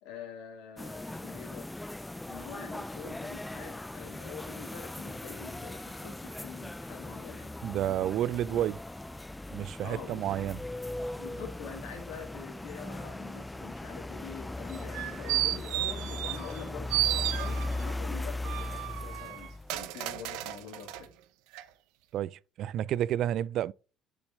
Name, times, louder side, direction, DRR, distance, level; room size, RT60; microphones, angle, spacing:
voice 1, 0.0-1.7 2.3-8.0 8.5-8.7 9.8-10.4 11.2-21.1, left 7 dB, 80° left, 2.7 m, -45 dB
sound 1, 0.8-19.8, left 2 dB, 10° left, 0.4 m, -39 dB
voice 2, 7.6-8.8 9.5-10.6 22.1-23.7, right 11 dB, 65° right, 0.3 m, -30 dB
sound 2, 14.7-16.6 16.9-17.9 18.4-21.0 21.5-21.6, right 15 dB, 80° right, 0.7 m, -33 dB
7.1 x 6.7 x 5.1 m
supercardioid pair, 70°, 0 cm